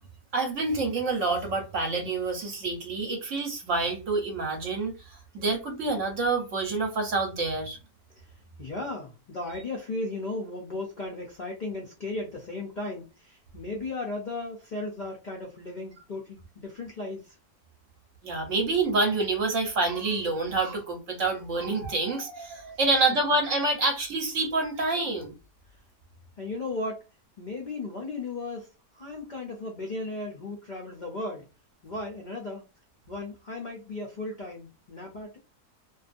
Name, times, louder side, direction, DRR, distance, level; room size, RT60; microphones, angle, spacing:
voice 1, 0.3-7.8 18.2-25.3, right 3 dB, 60° right, 0.9 m, -27 dB
voice 2, 8.6-17.4 26.4-27.0 27.4-28.7 28.9-31.4 31.8-32.6 33.1-35.4, left 2 dB, 70° left, 0.4 m, -36 dB
2.6 x 2.3 x 2.5 m
omnidirectional pair, 1.7 m